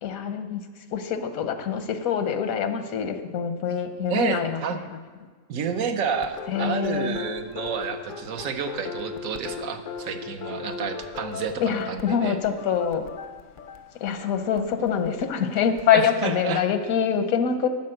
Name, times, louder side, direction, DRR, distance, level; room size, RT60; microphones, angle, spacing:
voice 1, 0.0-0.6 0.9-4.8 6.5-7.2 11.6-13.0 14.0-17.7, left 7 dB, 90° left, 8 dB, 1.2 m, -25 dB
voice 2, 4.1-4.8 5.5-12.4 15.9-16.6, right 6 dB, 75° right, 7 dB, 1.2 m, -30 dB
sound 1, 6.1-15.9, left 5 dB, 55° left, 0.6 m, -38 dB
11.5 x 4.3 x 7.7 m, 1.5 s
omnidirectional pair, 1.4 m